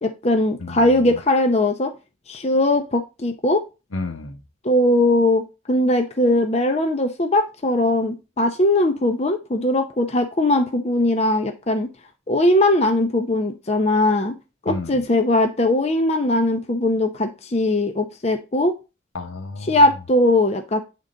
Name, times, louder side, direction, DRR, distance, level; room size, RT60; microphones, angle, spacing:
voice 1, 0.0-1.9 2.3-3.6 4.6-11.9 12.3-14.3 14.6-18.7 19.7-20.8, left 1 dB, 30° left, 0.6 m, -20 dB
voice 2, 0.6-1.2 3.9-4.4 14.7-15.0 19.1-19.8, left 3 dB, 85° left, 1.2 m, -32 dB
8.7 x 3.7 x 3.9 m
head